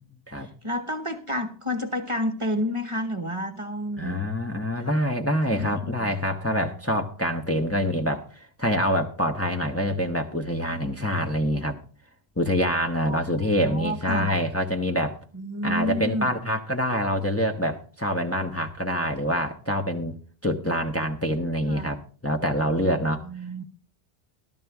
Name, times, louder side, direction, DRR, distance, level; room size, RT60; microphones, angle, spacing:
voice 1, 0.6-4.2 4.8-4.9 5.5-6.1 6.5-6.7 13.1-13.3 13.5-14.3 15.3-16.3 21.7-21.9 23.2-23.6, equal, 30° right, 1.1 m, -30 dB
voice 2, 4.0-11.8 12.4-15.2 15.6-20.2 20.4-23.2, equal, 15° left, 1.0 m, -26 dB
14.0 x 12.5 x 3.5 m
omnidirectional pair, 1.1 m